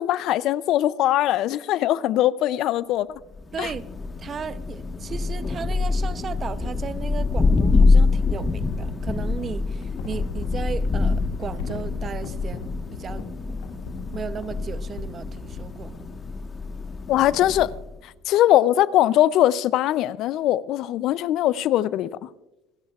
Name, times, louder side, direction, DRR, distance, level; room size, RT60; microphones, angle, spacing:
voice 1, 0.0-3.1 3.6-3.7 17.1-17.7 18.3-22.3, left 13 dB, 60° left, 0.4 m, -21 dB
Thunder, 3.3-17.9, left 3 dB, 25° left, 1.3 m, -25 dB
voice 2, 3.5-3.8 4.2-13.3 14.1-16.0, right 6 dB, 35° right, 0.6 m, -35 dB
sound 1, 5.4-5.5 7.7-8.9 9.7-16.0, left 5 dB, 80° left, 2.0 m, -39 dB
26.5 x 11.0 x 2.4 m
supercardioid pair, 105°, 0 cm